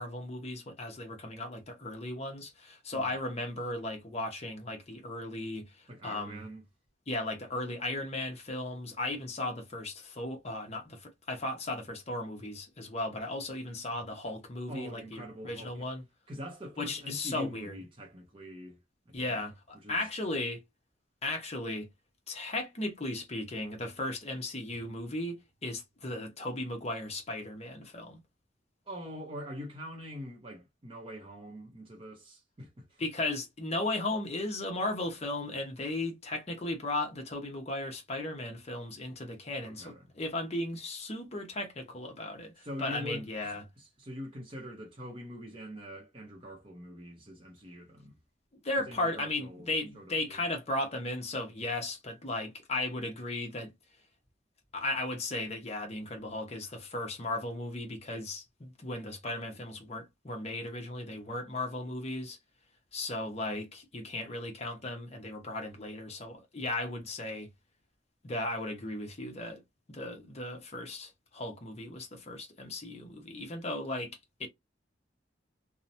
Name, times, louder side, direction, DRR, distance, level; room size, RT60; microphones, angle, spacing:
voice 1, 0.0-6.5 7.1-16.0 16.8-17.8 19.1-20.6 21.2-21.9 22.3-28.2 33.0-43.6 48.6-53.7 54.7-62.4 62.9-67.5 68.2-69.6 69.9-74.5, left 2 dB, 35° left, 0.7 m, -36 dB
voice 2, 5.9-6.6 14.7-15.9 16.3-18.8 19.1-19.4 19.8-20.1 28.9-33.0 39.6-40.0 42.6-43.2 43.8-48.2 48.9-50.4, equal, 30° right, 0.6 m, -44 dB
2.9 x 2.0 x 2.6 m
head